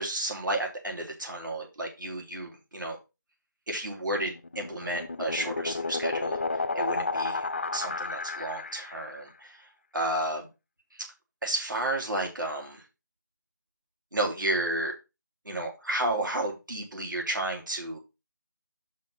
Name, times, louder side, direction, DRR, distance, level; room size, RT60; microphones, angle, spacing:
voice 1, 0.0-3.0 3.7-6.4 6.7-7.4 7.7-9.6 9.9-10.4 11.4-12.8 14.1-14.9 15.5-18.0, right 1 dB, 75° right, 1 dB, 3.7 m, -32 dB
sound 1, 4.3-9.1, left 3 dB, 35° left, 0.3 m, -32 dB
5.8 x 4.5 x 5.6 m, 0.27 s
figure-of-eight pair, 170°, 11 cm